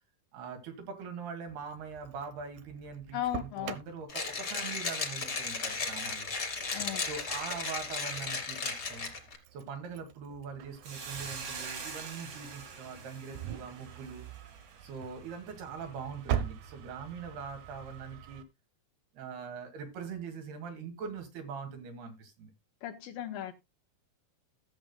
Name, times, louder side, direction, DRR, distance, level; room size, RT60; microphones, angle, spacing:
voice 1, 0.3-6.3 7.0-9.1 9.5-14.2 14.8-18.4 19.1-22.5, right 6 dB, 70° right, 4.2 m, -42 dB
Engine starting, 1.5-18.4, right 9 dB, 90° right, 1.6 m, -44 dB
voice 2, 3.1-3.8 6.7-7.0 22.8-23.5, left 12 dB, 75° left, 2.3 m, -36 dB
Mechanisms, 4.1-9.4, left 4 dB, 35° left, 1.7 m, -35 dB
Hiss, 10.8-15.3, right 5 dB, 45° right, 2.3 m, -44 dB
17.0 x 7.7 x 2.3 m
omnidirectional pair, 4.7 m